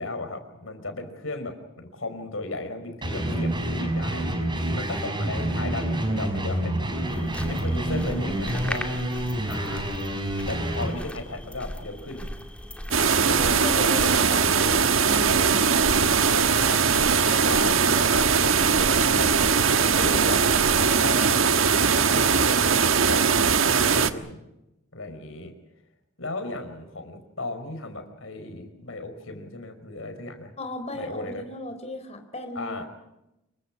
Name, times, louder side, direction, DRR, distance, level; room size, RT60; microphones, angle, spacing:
voice 1, 0.0-4.3 4.5-7.0 7.5-8.9 9.4-9.9 10.5-12.3 13.2-14.7 16.3-19.7 20.0-24.4 24.9-25.5 26.2-30.5 30.9-31.4 32.6-32.9, left 2 dB, 75° left, 7 dB, 5.1 m, -36 dB
sound 1, 3.0-10.9, right 1 dB, 25° right, 5.4 m, -28 dB
sound 2, 7.1-21.0, equal, 5° left, 2.4 m, -39 dB
sound 3, 12.9-24.1, right 6 dB, 80° right, 1.4 m, -20 dB
voice 2, 13.3-16.1 30.6-32.8, left 1 dB, 35° left, 7 dB, 3.9 m, -36 dB
27.0 x 24.0 x 6.1 m, 0.90 s
head